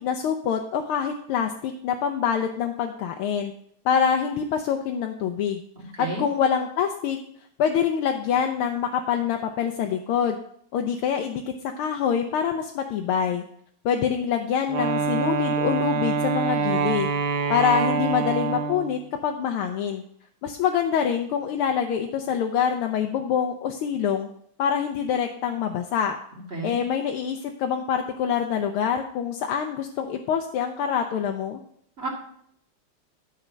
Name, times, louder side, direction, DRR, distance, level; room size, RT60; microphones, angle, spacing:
voice 1, 0.0-3.5 3.8-5.6 6.0-7.2 7.6-10.4 10.7-11.4 11.8-13.4 13.8-17.1 17.5-20.0 20.4-24.3 24.6-26.2 26.6-31.6, left 8 dB, 90° left, 4 dB, 1.6 m, -25 dB
voice 2, 6.0-6.2 26.5-26.8 32.0-32.1, right 2 dB, 30° right, -3 dB, 2.4 m, -30 dB
Wind instrument woodwind instrument, 14.7-19.0, right 5 dB, 75° right, 1.7 m, -25 dB
13.0 x 4.4 x 6.2 m, 0.67 s
omnidirectional pair, 2.3 m